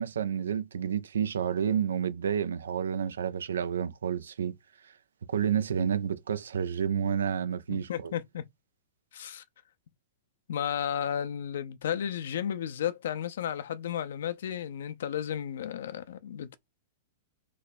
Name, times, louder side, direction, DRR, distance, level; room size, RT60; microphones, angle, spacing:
voice 1, 0.0-4.5 4.8-4.9 5.3-8.1, right 8 dB, 90° right, 0.5 m, -30 dB
voice 2, 7.7-8.4 9.1-9.4 10.5-16.6, left 9 dB, 75° left, 0.6 m, -33 dB
3.2 x 2.2 x 4.2 m
hypercardioid pair, 130°, 0 cm